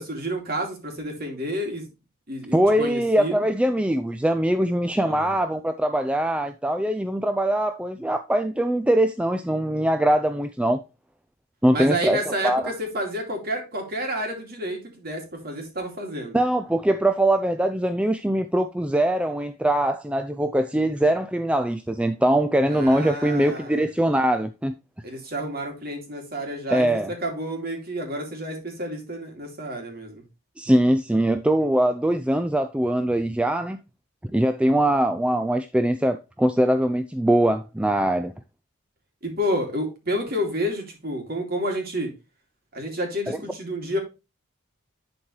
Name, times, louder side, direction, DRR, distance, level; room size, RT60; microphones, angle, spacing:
voice 1, 0.0-1.9 2.3-3.4 5.0-5.4 11.7-16.4 22.7-23.8 25.0-30.2 39.2-42.1 42.7-44.0, equal, 45° right, 2.5 m, -30 dB
voice 2, 2.5-10.8 11.6-12.6 16.3-24.7 26.7-27.1 30.6-33.8 34.2-38.3 43.3-43.4, right 1 dB, 5° right, 0.3 m, -22 dB
11.0 x 4.4 x 3.1 m
head